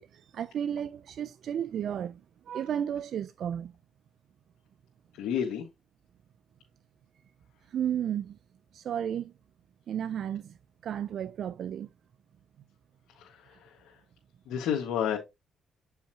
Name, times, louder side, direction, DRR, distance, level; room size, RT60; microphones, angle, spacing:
voice 1, 0.0-2.2 2.5-3.7 7.7-8.4 8.7-9.3 9.9-10.6 10.8-11.9, right 9 dB, 65° right, 0.4 m, -33 dB
voice 2, 5.2-5.6 13.1-13.9 14.5-15.2, left 9 dB, 85° left, 1.6 m, -31 dB
8.8 x 5.6 x 2.8 m
cardioid pair, 90°, 0 cm